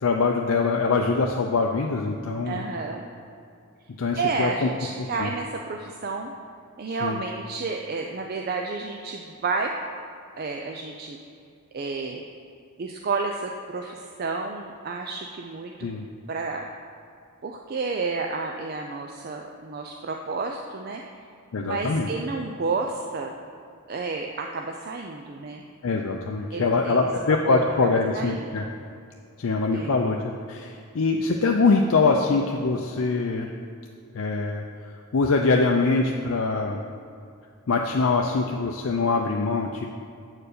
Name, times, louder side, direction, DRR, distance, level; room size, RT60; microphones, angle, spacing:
voice 1, 0.0-2.6 4.0-4.7 5.0-5.3 6.9-7.2 15.8-16.1 21.5-22.1 25.8-28.7 29.4-33.5 34.1-34.6 35.1-36.8 37.7-39.9, left 3 dB, 65° left, 2 dB, 0.5 m, -23 dB
voice 2, 2.4-3.1 4.2-6.3 6.8-9.7 10.4-11.2 11.7-12.2 12.8-15.9 16.3-16.6 17.4-21.0 21.6-23.3 23.9-25.6 26.5-27.6 28.1-28.5 29.7-30.0, right 4 dB, 45° right, 2 dB, 0.4 m, -31 dB
8.7 x 4.6 x 6.6 m, 2.4 s
head